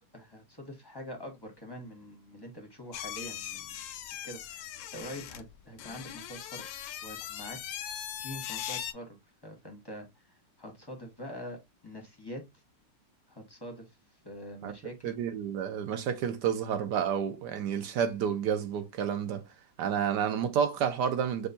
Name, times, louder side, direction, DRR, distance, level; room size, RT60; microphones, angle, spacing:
voice 1, 0.1-3.8 4.2-6.7 7.0-7.9 8.2-9.2 9.4-12.4 13.3-14.0 14.2-15.2, equal, 20° left, 0.7 m, -44 dB
sound 1, 2.9-8.9, left 11 dB, 80° left, 1.3 m, -40 dB
voice 2, 15.0-19.4 19.8-21.5, right 8 dB, 70° right, 1.3 m, -30 dB
6.4 x 2.3 x 2.6 m
omnidirectional pair, 2.0 m